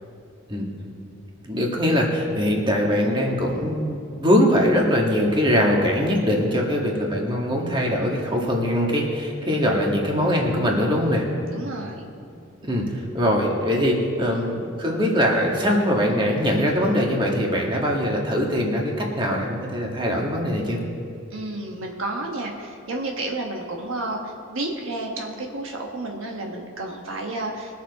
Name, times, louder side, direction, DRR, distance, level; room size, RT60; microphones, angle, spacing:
voice 1, 1.4-11.3 12.6-12.8 13.1-20.8, equal, 20° right, -1 dB, 1.6 m, -22 dB
voice 2, 11.5-12.0 21.3-27.8, right 2 dB, 65° right, 1 dB, 1.3 m, -31 dB
22.0 x 7.4 x 4.1 m, 2.4 s
head